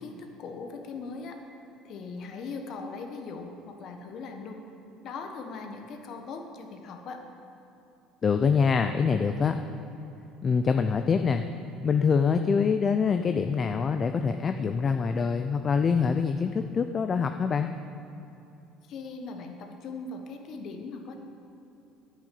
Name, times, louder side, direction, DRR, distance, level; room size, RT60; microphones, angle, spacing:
voice 1, 0.0-1.4 1.8-4.6 5.0-7.2 18.9-21.2, left 4 dB, 55° left, 4 dB, 1.3 m, -39 dB
voice 2, 8.2-9.6 10.4-11.4 11.8-17.7, left 5 dB, 35° left, 7 dB, 0.5 m, -25 dB
10.0 x 6.3 x 8.5 m, 2.8 s
supercardioid pair, 95°, 0 cm